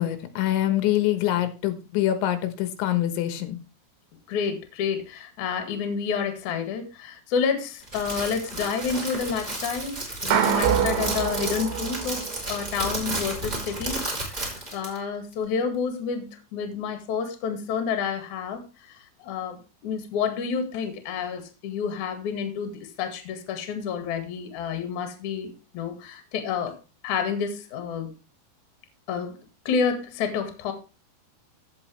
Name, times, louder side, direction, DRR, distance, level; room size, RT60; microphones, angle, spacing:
voice 1, 0.0-3.6, left 13 dB, 85° left, 9 dB, 3.5 m, -25 dB
voice 2, 4.3-19.0 19.2-19.6 19.8-26.8 27.0-28.1 29.1-29.3 29.7-30.7, left 6 dB, 55° left, 6 dB, 2.6 m, -29 dB
Crackle, 7.8-15.0, right 1 dB, 15° right, 2.7 m, -32 dB
sound 1, 10.3-12.8, right 9 dB, 85° right, 3.6 m, -25 dB
15.5 x 5.6 x 3.2 m, 0.31 s
omnidirectional pair, 5.3 m